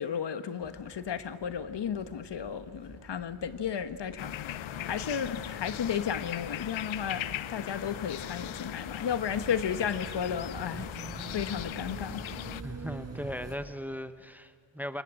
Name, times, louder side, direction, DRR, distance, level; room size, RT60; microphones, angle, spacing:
voice 1, 0.0-7.2 7.5-12.2, left 8 dB, 60° left, 1.2 m, -34 dB
sound 1, 0.6-13.5, right 3 dB, 30° right, 5.1 m, -46 dB
sound 2, 4.2-12.6, left 12 dB, 75° left, 0.7 m, -39 dB
voice 2, 12.6-15.0, equal, 5° right, 1.0 m, -38 dB
28.0 x 20.0 x 8.8 m
cardioid pair, 95°, 48 cm